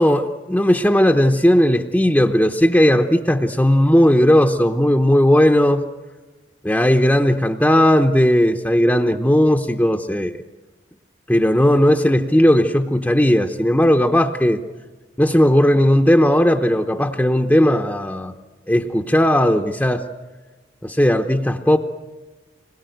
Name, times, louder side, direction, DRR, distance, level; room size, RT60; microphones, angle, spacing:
voice 1, 0.0-5.8 6.6-10.4 11.3-14.6 15.2-18.3 18.7-20.1 20.8-21.8, equal, 10° left, 3 dB, 0.8 m, -16 dB
26.5 x 21.0 x 9.2 m, 1.3 s
head